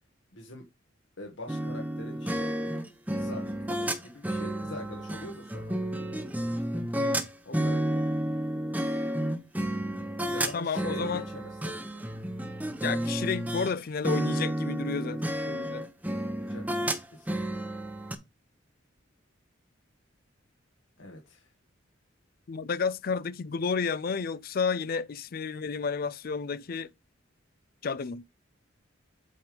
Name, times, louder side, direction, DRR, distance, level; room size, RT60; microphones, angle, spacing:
voice 1, 0.3-0.7 1.2-2.5 3.1-5.9 6.5-6.9 7.4-8.1 10.2-11.7 16.4-17.7 21.0-21.5 24.5-24.6, left 1 dB, 65° left, 1.5 m, -44 dB
sound 1, 1.5-13.7 14.0-18.2, right 1 dB, 10° right, 0.8 m, -31 dB
voice 2, 7.0-7.3 10.5-11.2 12.8-15.9 22.5-26.9 27.8-28.2, left 5 dB, 45° left, 0.4 m, -31 dB
8.4 x 3.4 x 5.2 m
head